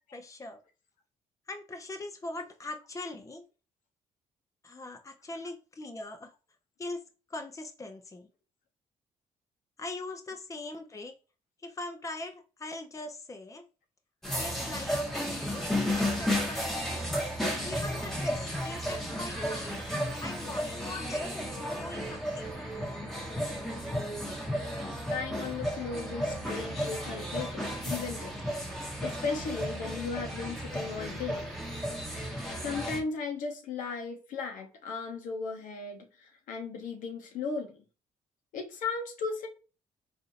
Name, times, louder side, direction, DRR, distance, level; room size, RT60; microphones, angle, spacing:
voice 1, 0.1-0.6 1.5-3.4 4.6-6.3 6.8-7.0 7.3-8.3 9.8-11.1 11.6-13.6 14.4-15.7 16.0-17.1 17.6-19.8 20.2-22.6, left 2 dB, 25° left, 5 dB, 0.7 m, -41 dB
sound 1, 14.2-33.0, equal, ahead, 1.1 m, -33 dB
voice 2, 24.9-28.3 28.7-31.4 32.6-37.8 38.5-39.5, left 4 dB, 75° left, 2 dB, 0.9 m, -36 dB
3.7 x 2.7 x 2.6 m, 0.34 s
supercardioid pair, 70°, 14 cm